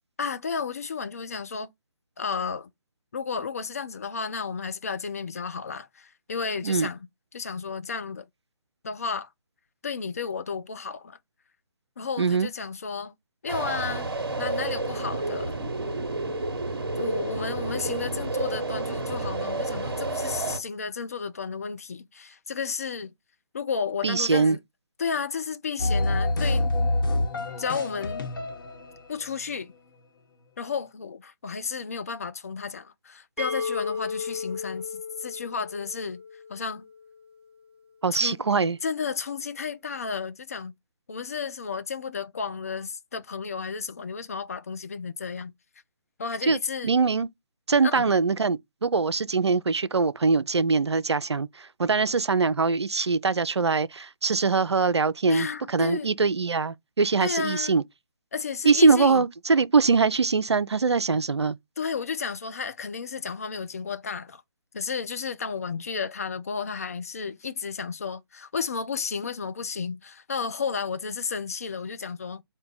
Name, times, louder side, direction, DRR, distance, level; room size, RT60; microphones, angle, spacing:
voice 1, 0.2-1.7 2.2-2.7 3.1-7.1 7.3-8.3 8.8-9.3 9.8-11.2 12.0-13.1 13.4-14.1 14.4-15.6 16.9-23.1 23.5-24.6 25.0-26.7 27.6-28.3 29.1-29.7 30.6-36.2 36.5-36.9 38.1-38.4 38.8-40.7 41.1-45.5 46.2-46.9 47.8-48.1 55.3-56.1 57.2-57.8 58.3-59.3 61.8-64.4 64.7-72.4, left 5 dB, 35° left, 0.4 m, -32 dB
voice 2, 12.2-12.5 24.0-24.6 38.0-38.8 46.4-47.3 47.7-57.8 58.6-61.6, right 4 dB, 75° right, 0.4 m, -23 dB
sound 1, 13.5-20.6, right 2 dB, 55° right, 1.0 m, -30 dB
sound 2, 25.8-29.1, left 2 dB, 50° left, 1.0 m, -26 dB
sound 3, 33.4-37.1, left 5 dB, 5° right, 0.8 m, -34 dB
4.5 x 2.2 x 3.8 m
figure-of-eight pair, 145°, 14 cm